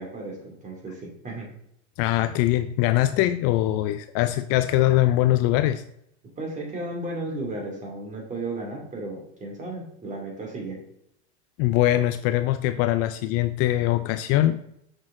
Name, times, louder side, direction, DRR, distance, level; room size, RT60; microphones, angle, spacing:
voice 1, 0.0-1.5 6.4-10.8, right 2 dB, 20° right, 0 dB, 2.4 m, -34 dB
voice 2, 2.0-5.8 11.6-14.6, left 14 dB, 45° left, 11 dB, 0.4 m, -22 dB
6.3 x 6.2 x 3.7 m, 0.74 s
supercardioid pair, 125°, 32 cm